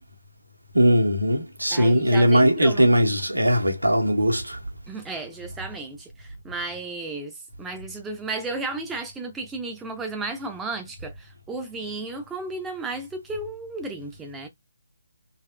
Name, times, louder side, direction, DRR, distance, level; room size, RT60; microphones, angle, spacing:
voice 1, 0.7-4.6, equal, 80° right, 1.4 m, -19 dB
voice 2, 1.7-2.9 4.9-14.5, right 3 dB, 5° right, 0.7 m, -34 dB
3.4 x 3.1 x 2.3 m
figure-of-eight pair, 145°, 0 cm